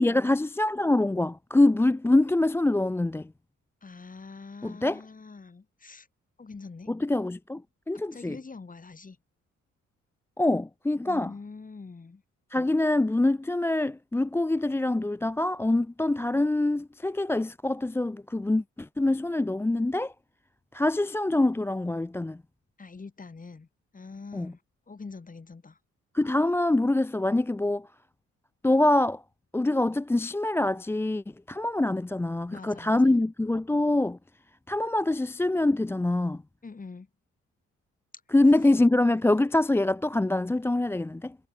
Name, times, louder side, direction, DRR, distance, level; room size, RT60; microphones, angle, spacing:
voice 1, 0.0-3.3 4.6-5.0 6.9-7.6 7.9-8.4 10.4-11.3 12.5-20.1 20.7-22.4 24.3-24.5 26.1-27.9 28.6-29.2 29.5-34.2 34.7-36.4 38.3-41.4, left 2 dB, 10° left, 0.5 m, -25 dB
voice 2, 3.8-6.1 6.4-6.9 8.1-9.2 11.1-12.2 22.8-23.7 23.9-24.6 24.9-25.8 32.5-33.1 36.6-37.1, left 4 dB, 25° left, 4.2 m, -44 dB
cardioid pair, 90°, 30 cm